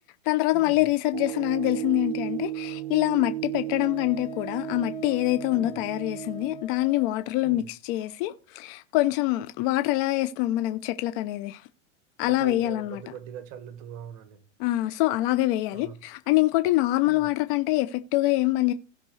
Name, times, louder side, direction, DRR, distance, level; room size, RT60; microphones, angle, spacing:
voice 1, 0.3-11.6 12.2-13.0 14.6-18.7, left 17 dB, 45° left, 0.7 m, -25 dB
sound 1, 1.1-6.6, right 14 dB, 70° right, 0.5 m, -35 dB
Wind instrument woodwind instrument, 3.7-7.4, left 8 dB, 60° left, 3.4 m, -44 dB
voice 2, 5.5-5.8 7.4-7.7 12.2-14.4 15.7-16.0 17.0-17.3, right 8 dB, 45° right, 1.7 m, -42 dB
16.5 x 5.8 x 3.2 m
supercardioid pair, 130°, 36 cm